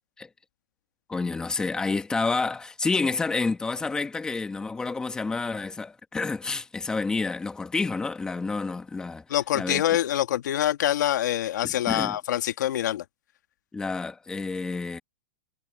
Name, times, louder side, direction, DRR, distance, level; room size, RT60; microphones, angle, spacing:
voice 1, 1.1-9.2 9.5-9.8 11.6-12.2 13.7-15.0, left 4 dB, 5° left, 1.7 m, -29 dB
voice 2, 9.3-13.0, left 12 dB, 65° left, 1.6 m, -25 dB
hypercardioid pair, 160°, 10 cm